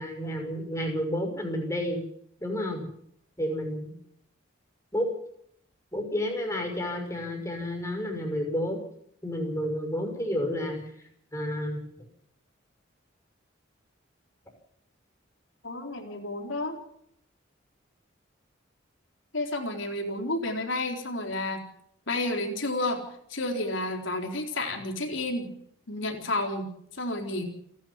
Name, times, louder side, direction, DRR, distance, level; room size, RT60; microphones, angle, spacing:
voice 1, 0.0-2.0 2.4-2.9 3.4-3.9 4.9-5.1 5.9-8.8 9.2-10.8 11.3-11.8, equal, 15° left, 2 dB, 6.1 m, -30 dB
voice 2, 15.6-16.8 19.3-21.6 22.1-23.0 23.3-25.5 25.9-26.7 27.0-27.4, left 2 dB, 75° left, 2 dB, 4.2 m, -31 dB
30.0 x 12.0 x 7.4 m, 0.68 s
head